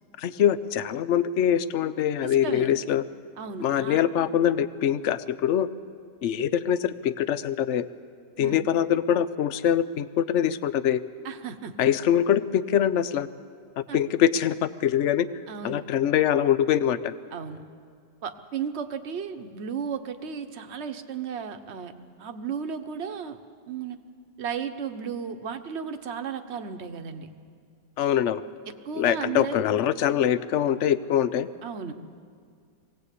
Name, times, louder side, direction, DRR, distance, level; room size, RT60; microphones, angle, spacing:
voice 1, 0.2-3.0 3.6-5.7 6.2-7.8 8.4-11.0 11.8-13.3 13.8-15.3 15.6-17.1 28.0-28.4 29.0-31.5, left 10 dB, 65° left, 14 dB, 0.7 m, -23 dB
voice 2, 2.2-2.7 3.4-4.0 8.4-8.7 11.2-11.7 13.9-14.0 15.5-15.8 17.3-17.6 18.2-21.9 22.2-23.4 23.7-24.0 24.4-27.3 28.8-29.6 31.6-31.9, right 7 dB, 45° right, 7 dB, 1.1 m, -34 dB
23.5 x 18.0 x 8.4 m, 2.2 s
omnidirectional pair, 1.9 m